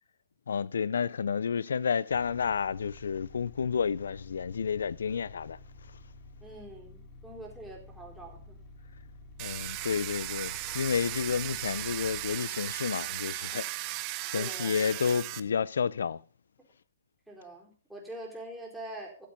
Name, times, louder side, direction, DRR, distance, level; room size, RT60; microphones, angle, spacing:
voice 1, 0.5-5.6 9.4-13.7 14.3-16.2, left 6 dB, 80° left, 0.6 m, -30 dB
sound 1, 2.1-12.4, left 2 dB, 35° left, 2.8 m, -51 dB
voice 2, 6.4-8.6 14.3-15.0 17.3-19.3, right 1 dB, 5° right, 4.3 m, -44 dB
Domestic sounds home sounds, 9.4-15.4, right 18 dB, 35° right, 0.7 m, -36 dB
13.5 x 7.6 x 5.3 m
hypercardioid pair, 145°, 0 cm